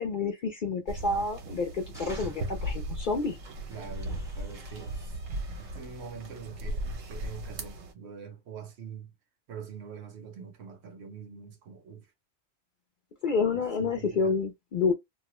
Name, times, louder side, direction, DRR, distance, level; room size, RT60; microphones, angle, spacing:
voice 1, 0.0-3.4 13.2-14.9, left 4 dB, 60° left, 0.5 m, -29 dB
sound 1, 0.9-7.9, right 1 dB, 80° right, 1.0 m, -37 dB
sound 2, 1.7-2.7 3.2-6.0, equal, 5° right, 0.6 m, -50 dB
voice 2, 3.7-5.2 5.5-9.1 9.5-12.1 13.8-14.4, right 6 dB, 65° right, 0.8 m, -44 dB
2.4 x 2.1 x 2.9 m
omnidirectional pair, 1.3 m